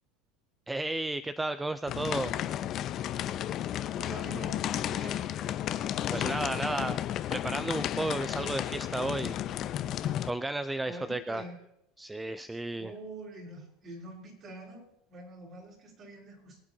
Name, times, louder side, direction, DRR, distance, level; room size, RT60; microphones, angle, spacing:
voice 1, 0.7-2.3 6.1-7.0 7.3-9.4 10.2-11.4 12.0-12.9, right 2 dB, 10° right, 12 dB, 0.4 m, -33 dB
sound 1, 1.9-10.3, left 11 dB, 45° left, 0.6 m, -33 dB
voice 2, 3.9-5.4 6.1-6.9 10.8-11.6 12.8-16.6, right 2 dB, 40° right, -1 dB, 4.4 m, -45 dB
23.5 x 8.5 x 2.7 m, 0.77 s
supercardioid pair, 110°, 0 cm